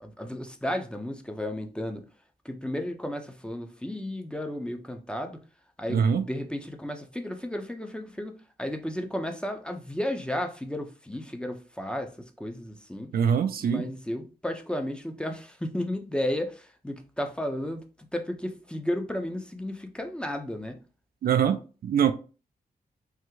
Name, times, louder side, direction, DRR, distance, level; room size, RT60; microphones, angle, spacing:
voice 1, 0.0-2.0 2.4-5.4 5.8-13.1 13.6-17.8 18.1-20.8, left 1 dB, 5° left, 0.6 m, -33 dB
voice 2, 5.9-6.2 13.1-13.9 21.2-22.1, right 7 dB, 70° right, 0.4 m, -23 dB
3.5 x 2.1 x 3.1 m
cardioid pair, 65°, 16 cm